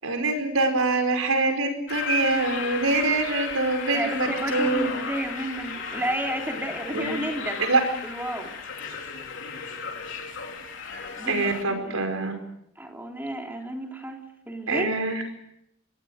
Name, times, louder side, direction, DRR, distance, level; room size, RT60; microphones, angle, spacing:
voice 1, 0.0-4.9 6.9-7.2 7.6-7.8 11.3-12.3 14.7-15.2, right 3 dB, 80° right, 6 dB, 5.1 m, -24 dB
sound 1, 1.9-11.6, left 5 dB, 60° left, 3.8 m, -34 dB
voice 2, 3.9-7.7 8.0-8.5 11.2-12.0 12.7-14.2 14.5-14.9, right 1 dB, 10° right, 2 dB, 3.4 m, -32 dB
27.0 x 21.5 x 6.5 m, 0.79 s
head